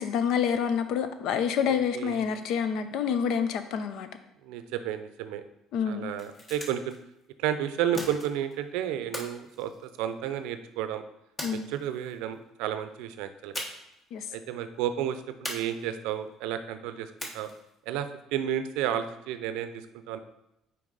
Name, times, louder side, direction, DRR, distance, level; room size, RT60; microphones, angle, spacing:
voice 1, 0.0-4.1 5.7-6.2 11.4-11.6 14.1-14.2, left 7 dB, 70° left, 10 dB, 0.5 m, -28 dB
voice 2, 1.7-2.3 4.4-5.4 5.9-7.0 7.4-11.0 11.5-13.6 14.3-17.5 17.9-20.2, right 10 dB, 85° right, 10 dB, 0.5 m, -32 dB
sound 1, 6.1-7.0 7.9-8.6 9.1-10.4 11.4-12.1 13.5-14.0 14.3-14.4 15.5-16.2 17.2-17.8, left 1 dB, 20° left, 1.0 m, -40 dB
6.1 x 4.6 x 3.9 m, 0.86 s
cardioid pair, 120°, 0 cm